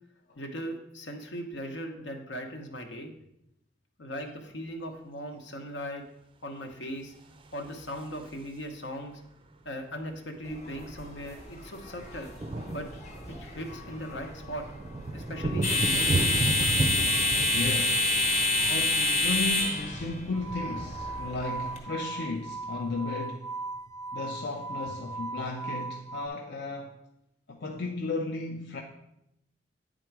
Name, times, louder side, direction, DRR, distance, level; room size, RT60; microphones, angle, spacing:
voice 1, 0.4-3.1 4.0-6.0 6.4-7.1 7.5-9.2 9.6-12.3 12.7-12.9 13.4-14.6 15.1-16.4 16.7-16.8 23.9-24.0, equal, 80° left, 1.1 m, -38 dB
sound 1, 7.2-8.8 10.1-10.2 10.4-10.6 10.9-23.0, right 2 dB, 30° right, 0.4 m, -35 dB
sound 2, 10.5-21.8, left 2 dB, 40° left, 1.1 m, -29 dB
voice 2, 17.5-18.1 18.7-23.5 24.1-27.0 27.5-28.8, left 3 dB, 60° left, 0.6 m, -34 dB
sound 3, 20.3-26.3, right 3 dB, 15° left, 0.6 m, -38 dB
9.3 x 3.9 x 4.6 m
head